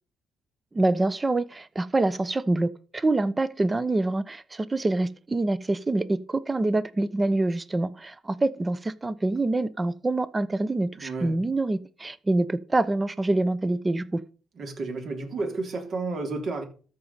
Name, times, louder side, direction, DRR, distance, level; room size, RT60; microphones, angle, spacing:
voice 1, 0.7-14.2, right 2 dB, 20° right, 0.9 m, -26 dB
voice 2, 11.0-11.4 14.6-16.6, right 3 dB, 55° right, 3.3 m, -31 dB
13.5 x 5.3 x 6.8 m
cardioid pair, 95°, 0 cm